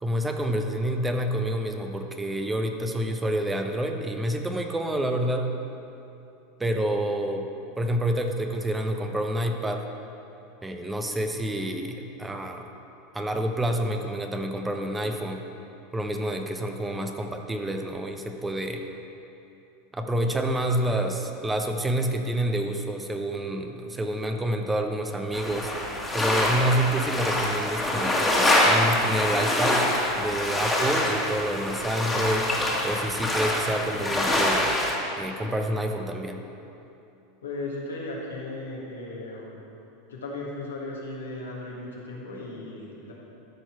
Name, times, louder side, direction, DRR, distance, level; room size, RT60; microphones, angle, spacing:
voice 1, 0.0-5.6 6.6-7.5 7.8-9.8 10.6-12.7 13.1-15.4 15.9-18.8 19.9-25.7 26.1-28.3 28.7-29.9 30.2-32.5 32.8-34.7 35.2-36.4, right 1 dB, 15° right, 5 dB, 0.7 m, -28 dB
sound 1, 25.3-35.0, left 1 dB, 10° left, 1.7 m, -25 dB
voice 2, 37.4-39.6 40.1-43.1, left 2 dB, 85° left, -3 dB, 1.7 m, -36 dB
13.0 x 4.6 x 4.5 m, 2.8 s
hypercardioid pair, 90°, 0 cm